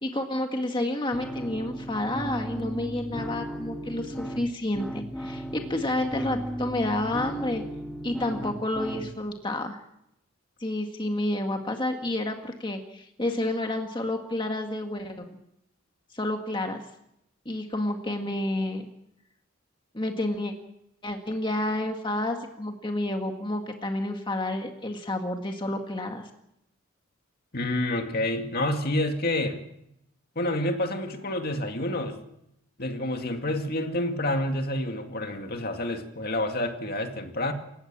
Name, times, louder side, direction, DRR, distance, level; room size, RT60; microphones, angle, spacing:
voice 1, 0.0-7.6 8.0-9.8 10.6-15.4 16.1-16.8 17.5-18.8 19.9-20.5 21.0-26.3, left 1 dB, 25° left, 3 dB, 1.9 m, -30 dB
sound 1, 1.1-9.1, equal, 5° left, 1.9 m, -36 dB
voice 2, 27.5-29.6 30.4-32.2 32.8-37.5, left 1 dB, 50° left, 5 dB, 2.3 m, -28 dB
28.5 x 16.0 x 7.4 m, 0.80 s
head